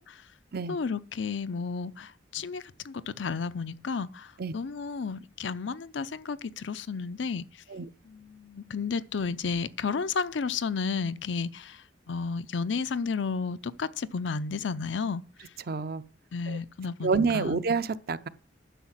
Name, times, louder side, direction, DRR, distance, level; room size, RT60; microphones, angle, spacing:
voice 1, 0.7-4.3 4.5-7.4 8.1-11.8 12.1-15.2 16.3-17.6, left 5 dB, 80° left, 0.6 m, -32 dB
voice 2, 15.7-16.0 16.5-16.6 17.0-18.3, right 4 dB, 55° right, 0.6 m, -28 dB
10.0 x 6.4 x 7.4 m
head